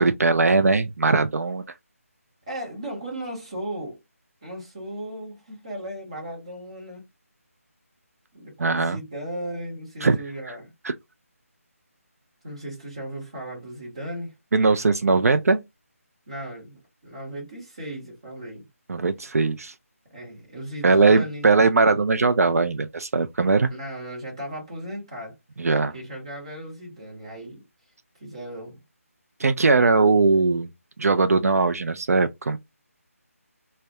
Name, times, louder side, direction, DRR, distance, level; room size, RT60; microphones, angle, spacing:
voice 1, 0.0-1.6 8.6-9.0 10.0-10.2 10.8-10.9 14.5-15.6 18.9-19.7 20.8-23.7 25.6-25.9 29.4-30.7 31.0-32.6, right 3 dB, 75° right, 0.3 m, -20 dB
voice 2, 2.5-4.0 4.4-7.1 8.3-10.7 12.4-14.3 16.3-18.7 20.1-21.5 23.7-25.4 25.9-27.6 28.2-28.8, right 1 dB, 20° right, 0.9 m, -36 dB
2.2 x 2.1 x 2.7 m
figure-of-eight pair, 180°, 8 cm